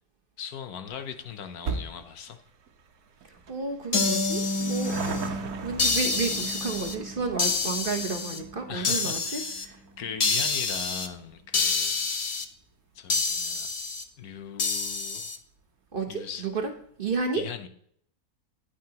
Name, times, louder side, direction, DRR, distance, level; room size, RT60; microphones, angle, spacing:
voice 1, 0.4-2.4 8.7-9.7 10.0-12.0 12.9-13.7 14.2-15.4 16.1-16.5 17.4-17.7, left 7 dB, 70° left, 1.3 m, -39 dB
sound 1, 0.9-13.6 13.9-14.0 14.9-15.0 15.2-15.3 15.6-15.7, right 5 dB, 70° right, 1.4 m, -41 dB
voice 2, 3.2-5.0 5.2-9.8 15.9-16.7 17.0-17.4, right 4 dB, 40° right, 1.0 m, -32 dB
Harp, 3.9-7.3 7.7-8.7, left 2 dB, 90° left, 1.8 m, -33 dB
sound 2, 3.9-5.3 5.8-6.9 7.4-8.4 8.8-9.6 10.2-11.1 11.5-12.4 13.1-14.0 14.6-15.4, left 4 dB, 50° left, 0.4 m, -28 dB
9.7 x 9.3 x 2.9 m
omnidirectional pair, 1.7 m